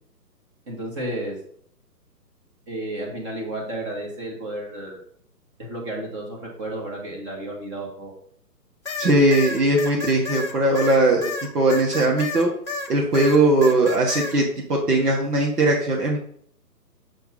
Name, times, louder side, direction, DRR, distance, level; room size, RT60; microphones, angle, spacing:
voice 1, 0.7-1.4 2.7-5.0 5.6-8.1, right 1 dB, 20° right, -1 dB, 1.2 m, -32 dB
sound 1, 8.9-12.9 13.1-14.4, left 3 dB, 45° left, 0.9 m, -31 dB
voice 2, 9.0-11.3 11.5-12.5 12.9-16.2, right 2 dB, 65° right, -1 dB, 1.5 m, -19 dB
5.8 x 3.5 x 5.6 m, 0.64 s
figure-of-eight pair, 135°, 50 cm